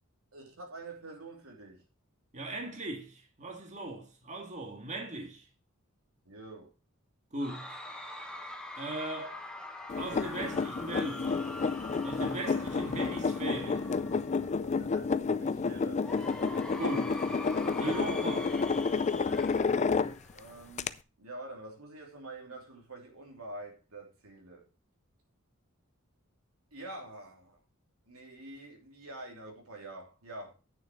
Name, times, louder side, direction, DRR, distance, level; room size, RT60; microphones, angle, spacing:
voice 1, 0.3-1.8 6.2-6.7 14.6-16.1 20.3-24.7 26.7-27.6 28.0-30.5, right 2 dB, 85° right, 3.1 m, -46 dB
voice 2, 2.3-5.5 7.3-7.8 8.8-9.4 10.0-11.4 12.0-13.9 16.8-17.2 17.8-18.6, right 2 dB, 35° right, 2.0 m, -38 dB
Cheering / Crowd, 7.4-14.7 16.0-20.7, left 1 dB, 5° left, 1.1 m, -44 dB
sound 1, 9.9-20.4 20.8-20.9, left 4 dB, 35° left, 0.4 m, -30 dB
9.0 x 6.9 x 4.6 m
head